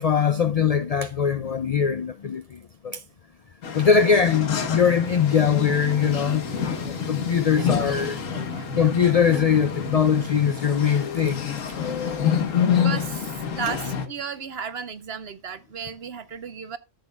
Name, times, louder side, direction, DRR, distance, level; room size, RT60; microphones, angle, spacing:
voice 1, 0.0-3.0 3.7-8.2 8.8-12.4, left 7 dB, 75° left, 0.3 m, -22 dB
sound 1, 3.6-14.1, left 7 dB, 90° left, 1.6 m, -27 dB
sound 2, 4.7-10.0, right 7 dB, 15° right, 1.0 m, -45 dB
voice 2, 7.6-8.9 12.7-13.3 13.5-16.8, right 6 dB, 55° right, 1.1 m, -35 dB
13.5 x 7.7 x 2.3 m
omnidirectional pair, 1.3 m